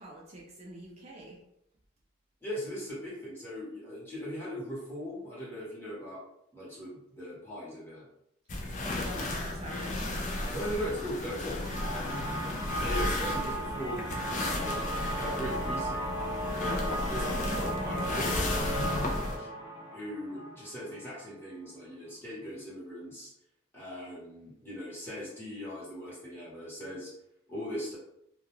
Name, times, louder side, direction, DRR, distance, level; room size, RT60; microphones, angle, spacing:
voice 1, 0.0-1.4 8.8-10.6, right 1 dB, 35° right, -4 dB, 0.4 m, -45 dB
voice 2, 2.4-6.2 6.5-8.1 10.5-12.1 12.8-14.1 14.5-16.0 16.6-19.5 19.9-23.3 23.7-27.1 27.5-28.0, equal, 10° left, -8 dB, 1.0 m, -39 dB
sound 1, 8.5-19.4, left 2 dB, 40° left, 0.4 m, -34 dB
sound 2, 11.6-21.3, right 1 dB, 15° right, 0.8 m, -36 dB
2.3 x 2.2 x 3.0 m, 0.79 s
head